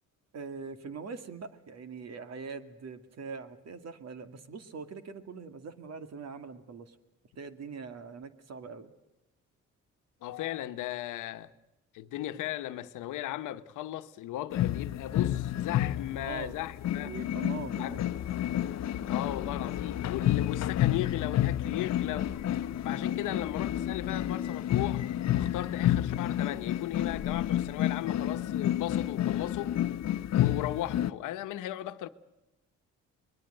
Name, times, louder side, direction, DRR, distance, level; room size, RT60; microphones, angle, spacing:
voice 1, 0.3-7.0 7.4-8.9 16.2-16.6 16.9-18.0 23.1-23.4, right 5 dB, 60° right, 2.1 m, -42 dB
voice 2, 10.2-11.5 11.9-17.1 17.8-18.0 19.1-22.4 22.8-25.1 25.3-29.8 30.4-32.1, left 14 dB, 90° left, 1.1 m, -36 dB
sound 1, 14.5-31.1, left 12 dB, 60° left, 0.8 m, -30 dB
24.5 x 21.0 x 7.8 m
cardioid pair, 90°, 30 cm